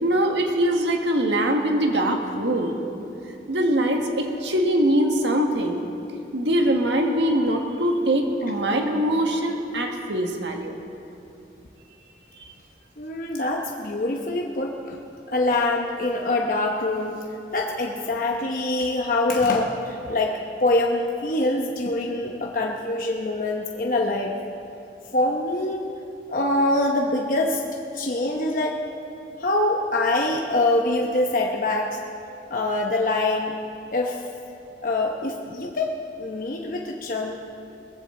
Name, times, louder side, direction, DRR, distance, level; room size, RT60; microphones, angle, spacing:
voice 1, 0.0-2.7 3.5-5.8 6.3-10.8, right 1 dB, 85° right, 2 dB, 1.6 m, -22 dB
voice 2, 13.0-15.0 15.3-17.2 17.5-24.3 25.1-25.9 26.3-27.6 27.9-28.8 29.4-32.0 32.5-33.6 33.9-34.2 34.8-37.4, left 2 dB, 50° left, 0 dB, 0.9 m, -24 dB
20.5 x 15.0 x 3.8 m, 2.7 s
head